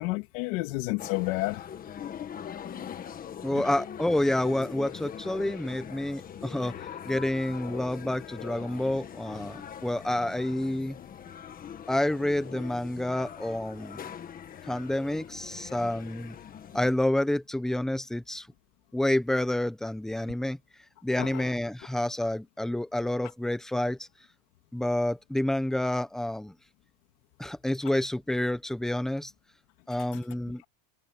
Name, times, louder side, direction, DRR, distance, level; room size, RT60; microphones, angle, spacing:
voice 1, 0.0-1.7 3.5-3.7 21.2-21.4, left 23 dB, 60° left, 2.2 m, -31 dB
sound 1, 1.0-16.9, left 8 dB, 20° left, 1.4 m, -42 dB
voice 2, 3.4-6.8 7.1-11.0 11.9-14.1 14.7-16.4 16.7-18.5 18.9-20.6 21.0-24.1 24.7-26.5 27.4-29.3 29.9-30.6, left 1 dB, ahead, 0.9 m, -29 dB
supercardioid pair, 170°, 44 cm